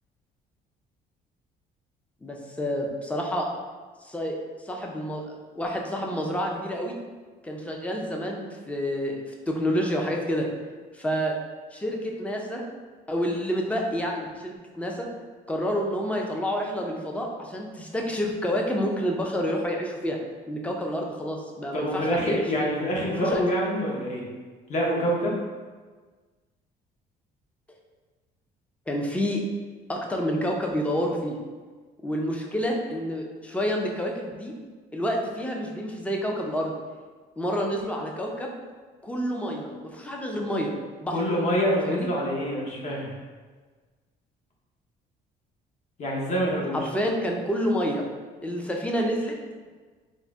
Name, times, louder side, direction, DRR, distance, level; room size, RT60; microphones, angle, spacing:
voice 1, 2.2-3.5 4.0-4.3 4.6-7.0 7.4-9.2 9.5-10.5 10.9-11.3 11.7-12.6 13.1-15.1 15.5-20.2 20.5-22.4 23.2-23.4 28.9-29.4 29.9-31.4 32.0-34.5 34.9-36.7 37.4-38.5 39.0-40.7 41.0-41.1 41.8-42.1 46.7-48.0 48.4-49.3, equal, 10° left, 0 dB, 0.5 m, -28 dB
voice 2, 21.7-24.2 24.7-25.4 41.1-43.1 46.0-46.8, equal, 45° left, -3 dB, 0.9 m, -26 dB
3.7 x 2.1 x 3.4 m, 1.4 s
cardioid pair, 110°, 17 cm